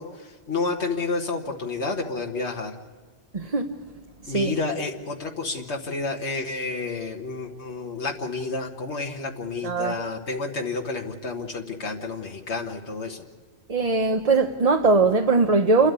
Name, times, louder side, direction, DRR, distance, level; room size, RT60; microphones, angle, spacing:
voice 1, 0.0-2.8 4.3-13.3, left 3 dB, 85° left, 1.7 m, -30 dB
voice 2, 3.3-3.7 4.2-4.5 9.6-10.0 13.7-15.9, right 3 dB, 35° right, 1.0 m, -20 dB
29.5 x 13.0 x 8.2 m
omnidirectional pair, 1.1 m